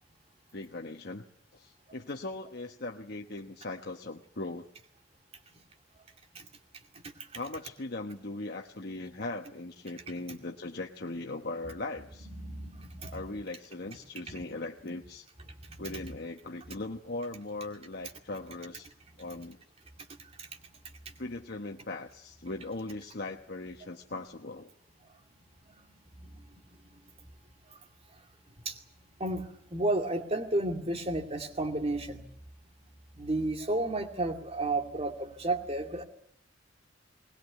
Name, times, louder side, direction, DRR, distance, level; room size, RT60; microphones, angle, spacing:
voice 1, 0.5-1.2 1.5-4.7 7.3-12.3 13.1-15.3 15.8-18.9 19.2-19.6 21.2-24.7, left 2 dB, 55° left, 2 dB, 1.2 m, -39 dB
voice 2, 12.3-13.2 14.3-14.4 15.7-16.0 20.4-20.5 26.2-26.4 28.6-28.8 29.2-32.3 33.2-36.0, right 2 dB, 30° right, 5 dB, 2.4 m, -32 dB
21.0 x 20.5 x 9.3 m, 0.68 s
head